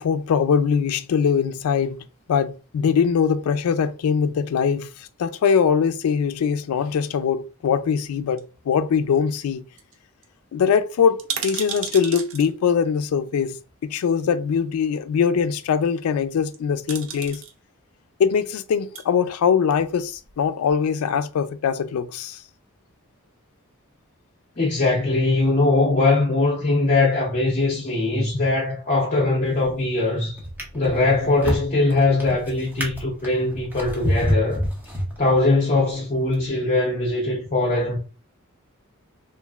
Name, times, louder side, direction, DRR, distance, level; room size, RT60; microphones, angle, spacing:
voice 1, 0.0-2.0 2.3-9.6 10.5-13.6 13.8-17.4 18.2-22.4, left 6 dB, 85° left, 0.3 m, -22 dB
sound 1, 8.4-9.2 9.5-9.6 9.8-9.9 10.2-10.3 11.0-12.5 13.7-13.8 16.3-16.6 16.9-17.5 18.7-19.1 19.7-20.4 20.7-20.8, right 7 dB, 65° right, 0.5 m, -33 dB
voice 2, 24.6-30.4 30.7-34.6 35.2-38.0, left 2 dB, 35° left, 0.6 m, -21 dB
Drawer open or close, 29.4-29.8 30.4-35.6 36.3-36.4, equal, 10° right, 0.6 m, -28 dB
3.0 x 2.4 x 2.3 m
head